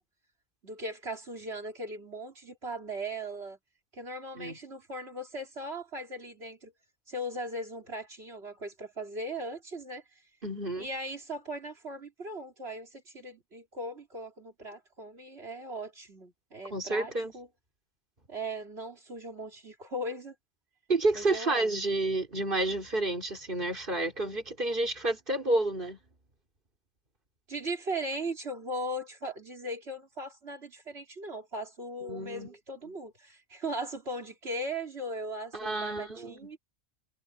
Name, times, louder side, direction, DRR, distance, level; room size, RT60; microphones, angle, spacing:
voice 1, 0.6-3.6 3.9-6.7 7.1-10.2 10.8-17.5 18.3-20.4 21.2-21.8 27.5-36.6, right 1 dB, 80° right, 3.5 m, -38 dB
voice 2, 10.4-10.9 16.7-17.3 20.9-26.0 32.0-32.5 35.5-36.4, right 2 dB, 55° right, 3.8 m, -30 dB
omnidirectional pair, 1.1 m